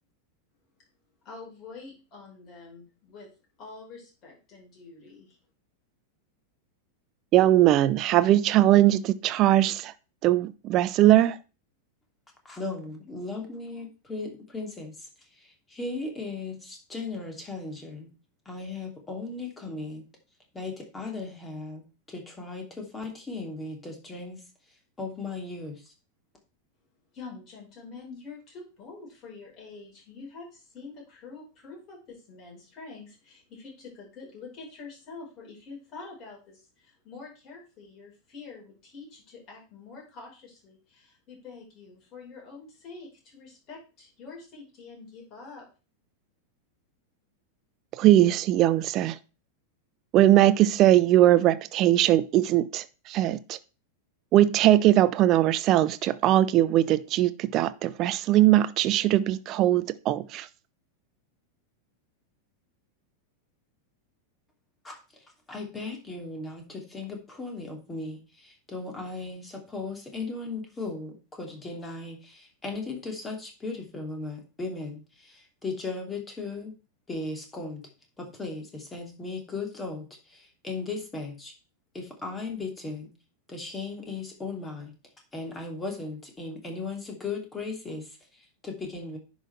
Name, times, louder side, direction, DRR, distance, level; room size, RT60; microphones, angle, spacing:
voice 1, 1.2-3.3 3.6-5.4 27.1-45.7, left 4 dB, 35° left, 5.7 m, -46 dB
voice 2, 7.3-9.9 10.2-11.4 48.0-49.2 50.1-53.6 54.3-60.5, right 13 dB, 35° right, 0.6 m, -20 dB
voice 3, 12.4-18.1 18.4-20.0 20.5-24.4 25.0-25.9 64.8-65.0 65.5-76.7 77.1-77.9 78.2-81.5 81.9-83.1 83.5-84.9 85.3-89.2, left 3 dB, 15° left, 2.8 m, -37 dB
10.0 x 5.7 x 4.6 m
figure-of-eight pair, 90°, 0 cm